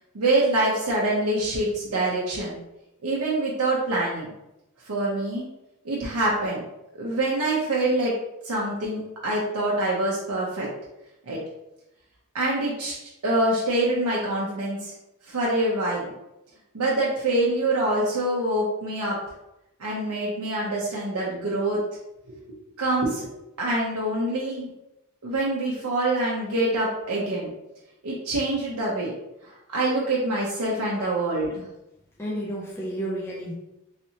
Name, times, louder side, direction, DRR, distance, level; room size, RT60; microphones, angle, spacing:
voice 1, 0.1-2.6 3.0-4.3 4.9-5.5 5.8-6.6 7.0-8.1 8.4-10.7 11.3-11.4 12.3-13.0 13.2-14.9 15.3-16.1 16.7-19.2 19.8-21.8 22.3-22.4 22.8-23.3 23.6-24.7 25.2-27.5 28.0-29.1 29.4-31.6, right 2 dB, 80° right, -4 dB, 0.6 m, -25 dB
voice 2, 32.2-33.5, right 1 dB, 10° left, -5 dB, 0.5 m, -31 dB
3.2 x 2.8 x 2.8 m, 0.92 s
head